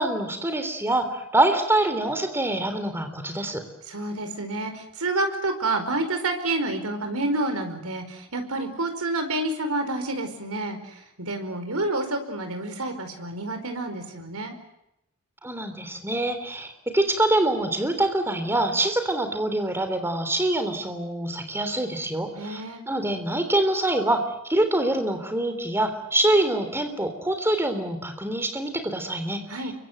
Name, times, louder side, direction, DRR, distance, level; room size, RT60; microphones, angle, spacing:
voice 1, 0.0-3.6 15.4-22.6 22.9-24.2 24.5-29.4, right 1 dB, 10° right, 7 dB, 3.4 m, -25 dB
voice 2, 3.9-14.5 22.4-22.8 29.5-29.7, right 2 dB, 90° right, 6 dB, 4.8 m, -29 dB
28.5 x 24.0 x 8.0 m, 0.84 s
head